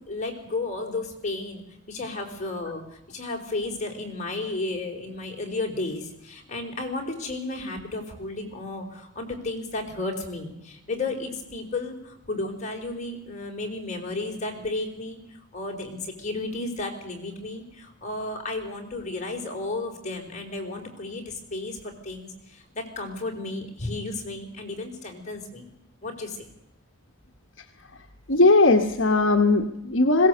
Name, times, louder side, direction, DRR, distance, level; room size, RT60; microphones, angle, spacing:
voice 1, 0.0-25.7 26.0-26.4, left 2 dB, 35° left, 1 dB, 4.4 m, -33 dB
voice 2, 28.3-30.3, left 2 dB, 60° left, 5 dB, 1.3 m, -19 dB
21.0 x 17.5 x 8.0 m, 0.81 s
head